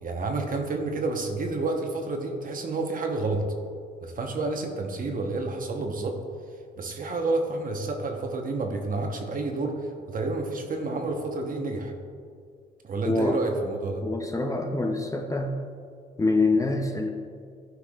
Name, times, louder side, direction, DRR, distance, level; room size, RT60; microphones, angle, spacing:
voice 1, 0.0-3.4 4.0-6.2 6.8-11.9 12.8-14.0, right 3 dB, 45° right, 3 dB, 1.0 m, -29 dB
voice 2, 13.0-13.4 14.0-15.5 16.2-17.1, left 2 dB, 15° left, 3 dB, 0.6 m, -25 dB
12.0 x 4.7 x 2.4 m, 2.2 s
cardioid pair, 90°, 20 cm